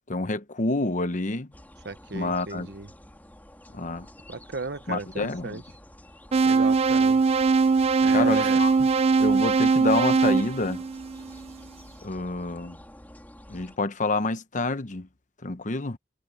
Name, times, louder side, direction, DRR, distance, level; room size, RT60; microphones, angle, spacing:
voice 1, 0.1-1.5 2.1-2.7 3.7-4.1 4.9-5.6 8.1-8.7 9.2-10.8 12.0-12.8 13.5-15.1 15.4-16.0, left 2 dB, 45° left, 1.0 m, -28 dB
sound 1, 1.5-13.8, left 1 dB, 10° left, 3.2 m, -49 dB
voice 2, 1.8-2.9 4.3-5.6 6.4-7.2 8.0-8.6, right 3 dB, 65° right, 1.0 m, -34 dB
sound 2, 6.3-11.4, right 4 dB, 35° right, 0.4 m, -21 dB
head